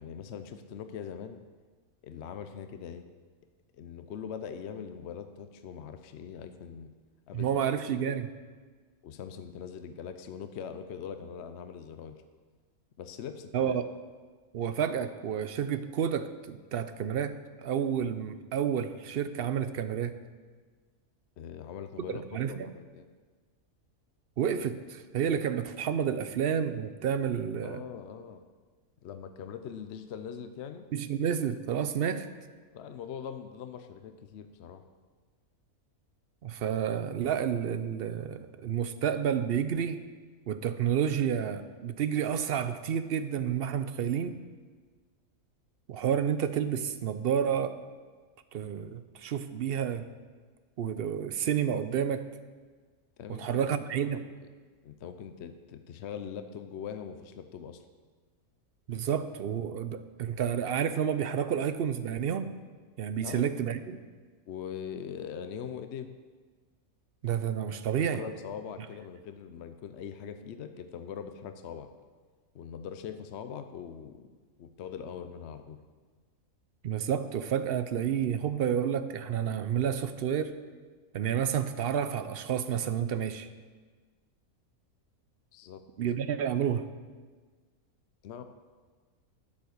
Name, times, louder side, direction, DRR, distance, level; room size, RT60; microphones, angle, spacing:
voice 1, 0.0-1.4 2.0-3.1 3.7-6.9 7.3-7.7 8.1-8.2 9.0-12.2 13.0-13.8 21.4-23.1 27.6-28.4 29.0-30.9 32.7-34.8 53.2-53.8 54.8-57.8 63.2-63.5 64.5-66.1 68.1-71.9 72.5-75.8 85.5-85.8 88.2-88.4, left 7 dB, 60° left, 9 dB, 0.8 m, -42 dB
voice 2, 7.3-8.3 13.5-13.9 14.5-20.2 22.1-22.7 24.4-27.8 30.9-32.3 36.4-40.0 40.5-44.4 45.9-47.8 48.5-50.1 50.8-52.2 53.3-54.3 58.9-62.5 63.0-63.8 67.2-68.2 76.8-80.5 81.1-83.5 86.0-86.9, right 8 dB, 60° right, 11 dB, 0.6 m, -30 dB
9.7 x 8.4 x 6.5 m, 1.4 s
omnidirectional pair, 1.5 m